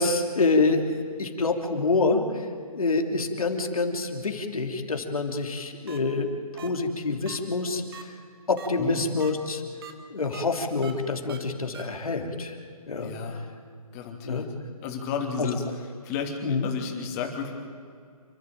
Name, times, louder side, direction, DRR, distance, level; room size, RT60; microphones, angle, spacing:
voice 1, 0.0-6.3 6.5-8.1 8.5-9.6 10.1-12.6 12.9-13.1 14.2-14.5 15.4-15.5 16.4-16.7, left 3 dB, 70° left, 4 dB, 3.1 m, -26 dB
sound 1, 5.9-6.0 6.6-6.7 7.3-7.4 7.9-8.0 8.6-8.7 9.2-9.3 9.8-9.9 10.3-10.4 10.8-10.9 11.3-11.4 11.7-11.8, right 7 dB, 40° right, 2.1 m, -42 dB
voice 2, 13.0-13.4 13.9-14.5 14.8-15.6 16.0-17.5, left 6 dB, 25° left, 3 dB, 3.0 m, -32 dB
29.0 x 12.0 x 9.1 m, 2.3 s
figure-of-eight pair, 140°, 19 cm